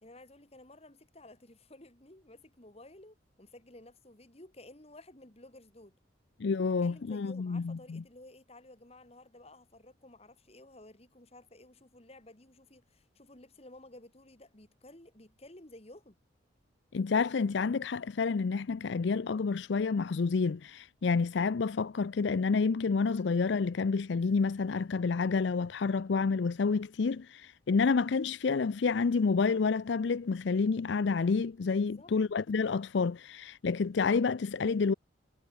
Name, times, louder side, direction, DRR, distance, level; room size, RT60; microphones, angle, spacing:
voice 1, 0.0-6.0 6.8-16.2 31.8-32.1, left 1 dB, 30° left, 2.1 m, -54 dB
voice 2, 6.4-8.0 16.9-34.9, left 4 dB, 65° left, 0.5 m, -29 dB
head